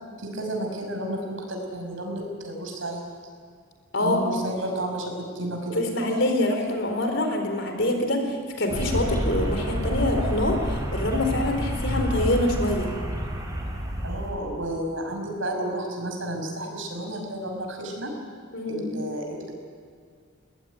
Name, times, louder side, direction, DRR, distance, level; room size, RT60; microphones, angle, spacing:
voice 1, 0.2-3.1 4.0-5.8 14.0-18.1 18.6-19.6, right 1 dB, 75° right, 2 dB, 6.2 m, -32 dB
voice 2, 5.7-12.9 18.5-18.9, left 1 dB, 65° left, 5 dB, 4.2 m, -25 dB
sound 1, 8.7-14.3, equal, 20° right, 4.7 m, -28 dB
21.5 x 20.0 x 9.5 m, 2.1 s
head